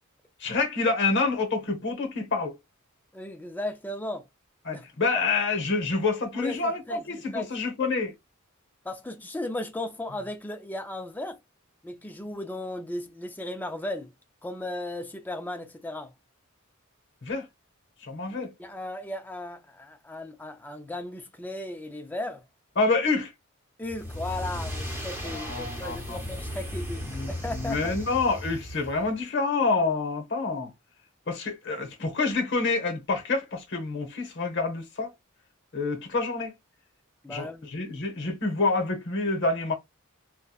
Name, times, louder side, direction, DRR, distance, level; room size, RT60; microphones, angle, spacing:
voice 1, 0.4-2.6 4.6-8.1 17.2-17.5 18.0-18.5 22.8-23.3 25.2-26.2 27.1-30.7 31.3-35.1 35.7-36.5 37.3-39.7, left 3 dB, 60° left, 0.9 m, -27 dB
voice 2, 3.1-4.2 4.7-4.8 6.3-7.5 7.8-7.9 8.8-11.4 11.8-14.1 14.4-16.1 18.6-22.4 23.8-28.0 37.2-37.7, left 1 dB, 10° left, 0.4 m, -36 dB
sound 1, 23.8-29.1, equal, 10° right, 0.8 m, -36 dB
2.8 x 2.2 x 2.3 m
head